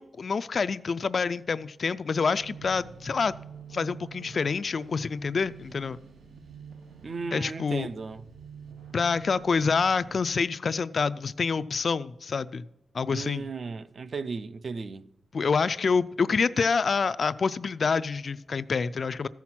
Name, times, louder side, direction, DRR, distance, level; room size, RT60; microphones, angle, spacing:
voice 1, 0.0-3.3 3.7-6.0 7.3-7.9 8.9-12.6 12.9-13.4 15.3-19.3, left 5 dB, 45° left, 0.3 m, -27 dB
sound 1, 2.4-10.2, right 6 dB, 85° right, 1.3 m, -47 dB
voice 2, 7.0-8.2 13.1-15.1, right 4 dB, 45° right, 0.5 m, -35 dB
14.5 x 5.8 x 6.0 m
wide cardioid pair, 140°, 0 cm